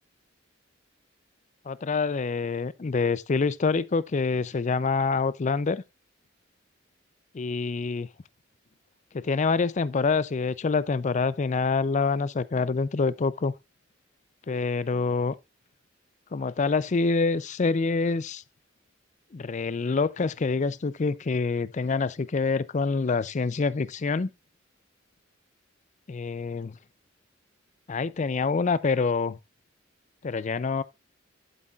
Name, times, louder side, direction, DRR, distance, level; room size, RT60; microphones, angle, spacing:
voice 1, 1.7-5.8 7.3-8.1 9.1-13.5 14.5-15.3 16.3-18.4 19.3-24.3 26.1-26.8 27.9-29.4 30.2-30.8, left 4 dB, 35° left, 0.4 m, -26 dB
11.5 x 8.1 x 2.4 m
head